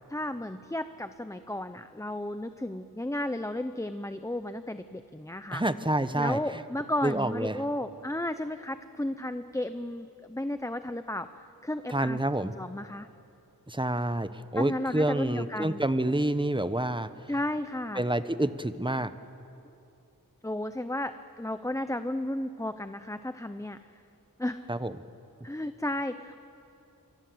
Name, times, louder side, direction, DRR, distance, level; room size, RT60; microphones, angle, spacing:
voice 1, 0.1-5.6 6.2-13.1 14.6-15.8 17.3-18.0 20.4-23.8 24.4-24.7 25.4-26.4, left 1 dB, 10° left, 10 dB, 0.7 m, -33 dB
voice 2, 5.5-6.6 7.0-7.6 11.9-12.5 13.7-17.3 17.9-19.1 24.7-24.9, right 1 dB, 15° right, 12 dB, 1.0 m, -28 dB
27.5 x 25.0 x 7.9 m, 2.7 s
wide cardioid pair, 70°, 36 cm